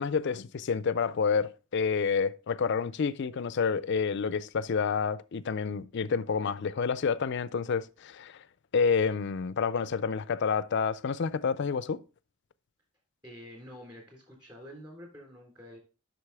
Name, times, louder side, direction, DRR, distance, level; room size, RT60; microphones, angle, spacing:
voice 1, 0.0-8.4 8.7-12.0, left 5 dB, 50° left, 0.4 m, -29 dB
voice 2, 13.2-15.8, equal, 20° right, 3.6 m, -48 dB
8.0 x 6.2 x 3.4 m
head